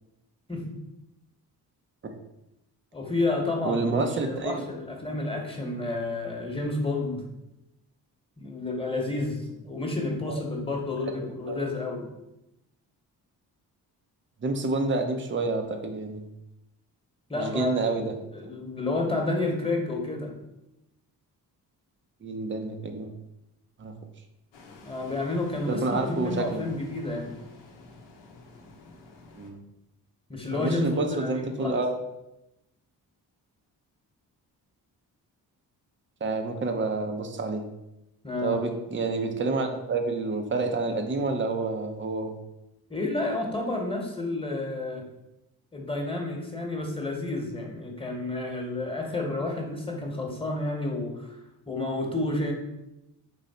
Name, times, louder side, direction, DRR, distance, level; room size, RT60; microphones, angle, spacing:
voice 1, 2.9-7.2 8.4-12.1 17.3-20.3 24.8-27.4 30.3-31.8 38.2-38.6 42.9-45.0 45.7-51.4 51.7-52.5, left 2 dB, 10° left, 1 dB, 1.3 m, -30 dB
voice 2, 3.6-4.6 5.1-5.2 10.3-10.4 11.5-11.6 14.4-16.2 17.3-18.1 22.2-23.1 23.8-23.9 25.7-26.7 29.4-29.6 30.5-32.0 36.2-37.6 38.4-42.3, right 3 dB, 25° right, 5 dB, 0.7 m, -28 dB
sound 1, 24.5-29.5, left 3 dB, 80° left, 0.8 m, -49 dB
3.9 x 3.1 x 4.3 m, 0.89 s
supercardioid pair, 50°, 43 cm